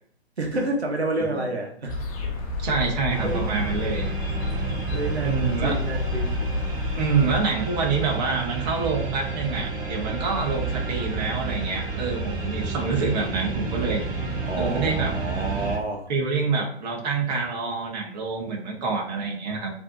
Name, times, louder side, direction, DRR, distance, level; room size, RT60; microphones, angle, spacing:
voice 1, 0.4-1.9 2.2-2.3 3.2-3.5 4.9-6.4 14.4-16.1, right 2 dB, 80° right, 1 dB, 1.0 m, -29 dB
sound 1, 1.9-7.4, left 3 dB, 35° left, 0.7 m, -30 dB
voice 2, 2.6-4.1 5.2-5.8 7.0-14.0 14.5-15.1 16.1-19.7, right 4 dB, 40° right, 0 dB, 1.2 m, -26 dB
sound 2, 3.1-15.8, right 4 dB, 15° right, 0.9 m, -30 dB
4.6 x 2.9 x 2.5 m, 0.65 s
figure-of-eight pair, 120°, 32 cm